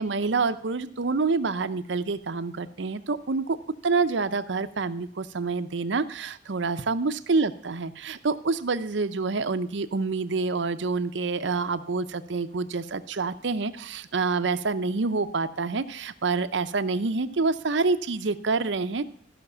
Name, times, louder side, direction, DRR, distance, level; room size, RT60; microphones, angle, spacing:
voice 1, 0.0-3.6 3.8-19.0, right 4 dB, 75° right, 12 dB, 0.7 m, -27 dB
14.0 x 5.9 x 6.8 m, 0.63 s
head